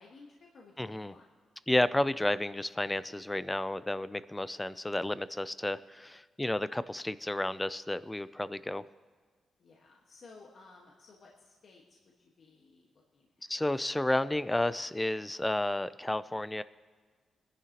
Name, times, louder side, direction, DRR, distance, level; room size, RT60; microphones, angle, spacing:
voice 1, 0.0-1.3 9.6-13.5, left 3 dB, 55° left, -2 dB, 1.4 m, -57 dB
voice 2, 0.8-1.1 1.7-8.8 13.5-16.6, left 1 dB, 10° left, 16 dB, 0.4 m, -31 dB
21.5 x 11.0 x 2.9 m, 1.5 s
cardioid pair, 110°, 0 cm